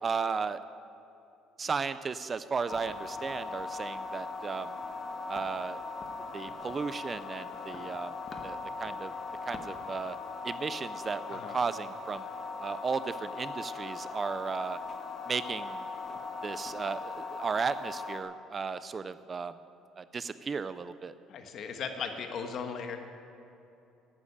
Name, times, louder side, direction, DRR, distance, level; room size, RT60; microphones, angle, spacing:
voice 1, 0.0-0.6 1.6-4.7 5.3-5.8 6.3-8.1 8.4-9.1 9.5-10.2 10.4-12.3 12.6-14.8 15.3-15.9 16.4-19.5 20.0-21.1, right 5 dB, 25° right, 14 dB, 0.4 m, -35 dB
sound 1, 2.7-18.2, left 4 dB, 30° left, 1.3 m, -40 dB
voice 2, 21.3-23.0, left 6 dB, 45° left, 6 dB, 1.4 m, -37 dB
11.5 x 10.5 x 8.5 m, 2.8 s
cardioid pair, 145°, 0 cm